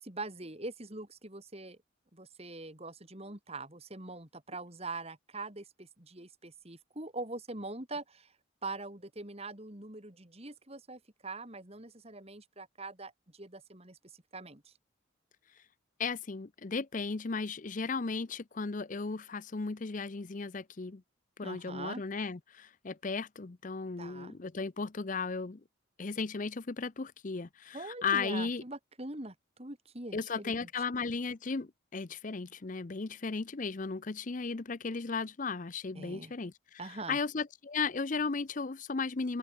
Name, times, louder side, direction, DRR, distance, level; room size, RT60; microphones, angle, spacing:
voice 1, 0.0-1.8 2.1-8.3 8.6-14.0 14.3-14.7 21.4-22.0 24.0-24.4 27.7-30.7 35.9-36.3 36.8-37.2, right 2 dB, 30° right, 3.0 m, -43 dB
voice 2, 16.0-21.0 21.4-25.6 26.0-28.6 30.1-36.8 37.1-39.4, left 4 dB, 40° left, 0.6 m, -35 dB
open air
head